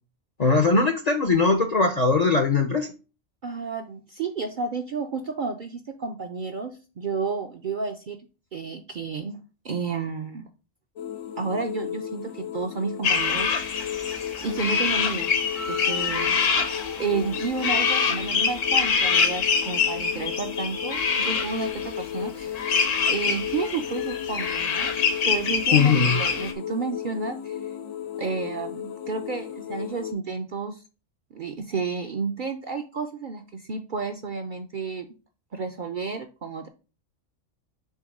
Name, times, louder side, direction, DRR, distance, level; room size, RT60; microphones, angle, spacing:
voice 1, 0.4-2.9 25.7-26.2, left 4 dB, 45° left, 6 dB, 0.5 m, -20 dB
voice 2, 3.4-8.2 8.5-9.4 9.6-10.5 11.4-14.0 14.4-15.3 15.7-16.4 17.0-22.7 23.0-24.9 25.2-27.7 28.1-30.8 31.3-35.1 35.5-36.7, right 5 dB, 55° right, 5 dB, 0.6 m, -31 dB
sound 1, 11.0-30.1, left 10 dB, 90° left, 1.1 m, -34 dB
sound 2, 13.0-26.5, left 5 dB, 70° left, 1.2 m, -25 dB
6.4 x 3.1 x 5.3 m, 0.33 s
omnidirectional pair, 1.4 m